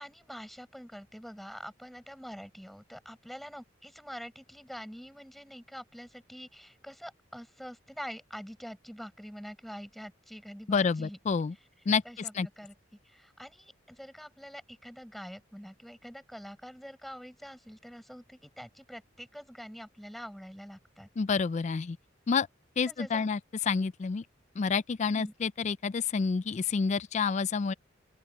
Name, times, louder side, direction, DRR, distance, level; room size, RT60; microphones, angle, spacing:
voice 1, 0.0-11.2 12.0-12.7 13.0-21.1 22.9-23.3 25.1-25.3, equal, ahead, 7.3 m, -45 dB
voice 2, 10.7-11.5 11.9-12.0 12.3-12.5 21.2-22.0 22.3-22.5 22.8-24.2 24.6-27.7, left 5 dB, 35° left, 0.3 m, -28 dB
open air
head